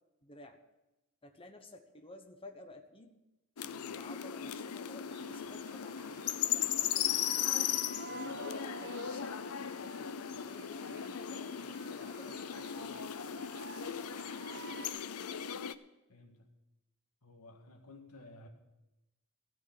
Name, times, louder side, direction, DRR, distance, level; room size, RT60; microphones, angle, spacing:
voice 1, 0.2-0.6 1.2-3.2 3.6-7.5 8.1-13.0, left 2 dB, 25° left, 1.1 m, -54 dB
sound 1, 3.6-15.7, left 9 dB, 75° left, 0.6 m, -37 dB
sound 2, 5.1-14.9, right 4 dB, 55° right, 1.3 m, -51 dB
voice 2, 16.1-16.5 17.2-18.5, left 2 dB, 90° left, 1.9 m, -54 dB
15.5 x 6.5 x 8.0 m
head